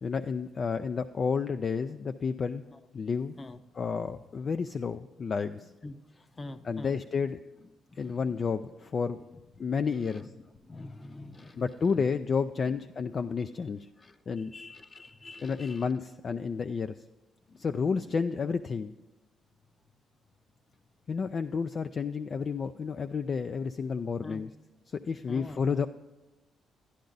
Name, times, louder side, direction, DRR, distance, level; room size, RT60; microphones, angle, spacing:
voice 1, 0.0-2.6 2.9-3.4 3.8-5.7 6.6-7.4 8.0-9.2 9.6-10.3 11.6-13.9 14.3-14.5 15.4-17.0 17.6-18.9 21.1-24.5 25.0-25.9, left 5 dB, 45° left, 9 dB, 0.3 m, -31 dB
voice 2, 5.8-7.3 7.6-8.5 9.3-11.7 14.0-15.9 17.5-17.7 24.2-24.4 25.3-25.8, left 2 dB, 25° left, 11 dB, 0.7 m, -47 dB
11.5 x 10.5 x 3.9 m, 1.1 s
cardioid pair, 90°, 0 cm